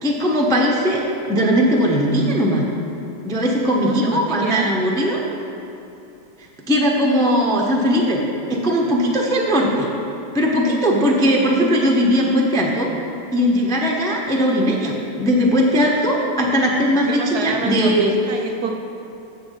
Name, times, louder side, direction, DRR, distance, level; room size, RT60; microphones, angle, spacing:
voice 1, 0.0-2.7 3.2-5.2 6.7-8.2 8.5-9.9 10.3-12.9 13.3-18.1, equal, 5° left, -1 dB, 0.3 m, -19 dB
voice 2, 3.8-4.7 16.4-16.5 17.1-18.7, right 5 dB, 65° right, 3 dB, 1.0 m, -28 dB
7.3 x 7.0 x 7.5 m, 2.7 s
omnidirectional pair, 2.1 m